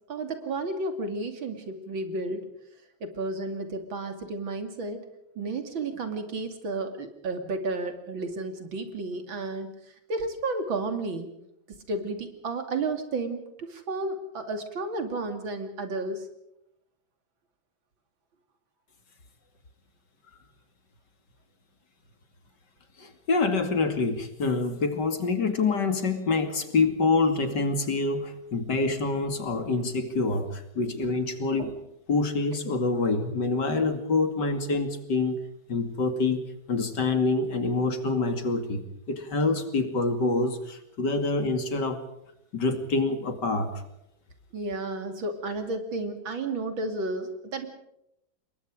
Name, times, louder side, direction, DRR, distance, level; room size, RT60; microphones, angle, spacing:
voice 1, 0.1-2.5 3.0-5.0 5.4-9.7 10.1-11.3 11.7-13.4 13.7-16.3 31.6-31.7 44.5-47.7, right 2 dB, 75° right, 7 dB, 3.3 m, -32 dB
voice 2, 23.0-31.7 32.1-35.4 35.7-36.4 36.7-38.8 39.1-42.0 42.5-43.7, left 3 dB, 60° left, 7 dB, 3.0 m, -26 dB
27.5 x 22.0 x 5.0 m, 0.81 s
omnidirectional pair, 2.1 m